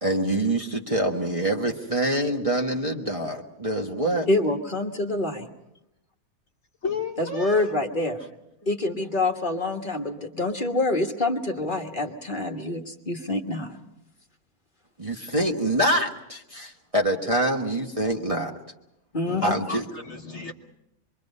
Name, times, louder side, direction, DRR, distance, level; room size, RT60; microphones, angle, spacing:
voice 1, 0.0-4.3 15.0-18.5 19.4-19.8, right 1 dB, 25° right, 0 dB, 1.3 m, -25 dB
voice 2, 4.3-5.5 7.2-8.2 8.7-13.8 19.1-19.5, left 2 dB, 35° left, 3 dB, 1.5 m, -26 dB
voice 3, 6.8-7.7 19.2-20.5, left 4 dB, 50° left, 3 dB, 1.4 m, -33 dB
26.0 x 23.0 x 5.4 m, 0.86 s
omnidirectional pair, 1.7 m